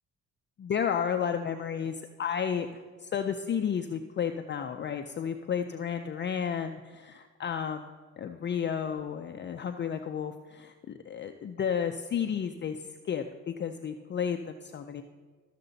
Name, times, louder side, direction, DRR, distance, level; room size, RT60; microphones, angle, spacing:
voice 1, 0.6-7.8 8.2-10.7 11.1-12.8 13.0-15.0, left 7 dB, 35° left, 6 dB, 0.5 m, -32 dB
13.5 x 6.7 x 4.0 m, 1.4 s
cardioid pair, 90°, 30 cm